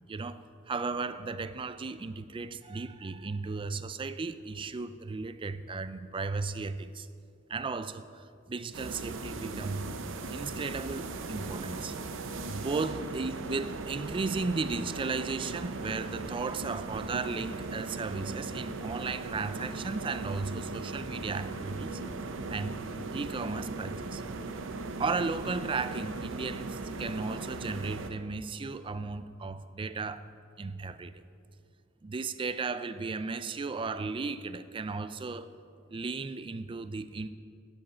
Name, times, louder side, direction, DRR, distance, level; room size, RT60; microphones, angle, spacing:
voice 1, 0.1-7.1 7.5-9.9 10.3-12.0 12.4-22.0 22.5-22.8 23.1-24.2 25.0-30.3 30.6-31.2 32.0-35.5 35.9-37.3, right 4 dB, 25° right, 0.4 m, -35 dB
sound 1, 8.7-28.1, right 3 dB, 65° right, 0.7 m, -38 dB
11.5 x 8.0 x 5.6 m
head